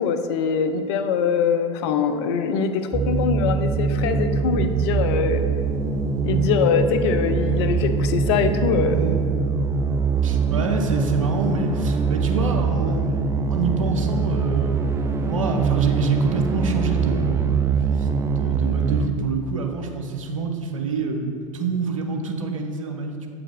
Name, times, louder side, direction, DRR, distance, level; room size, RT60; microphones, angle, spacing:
voice 1, 0.0-5.4 6.2-9.0, left 6 dB, 55° left, 8 dB, 0.5 m, -23 dB
sound 1, 2.9-19.1, right 5 dB, 15° right, 0.3 m, -23 dB
voice 2, 8.9-9.2 10.2-13.2 13.5-23.3, right 4 dB, 75° right, 4 dB, 0.7 m, -27 dB
7.9 x 4.8 x 3.6 m, 2.3 s
figure-of-eight pair, 75°, 17 cm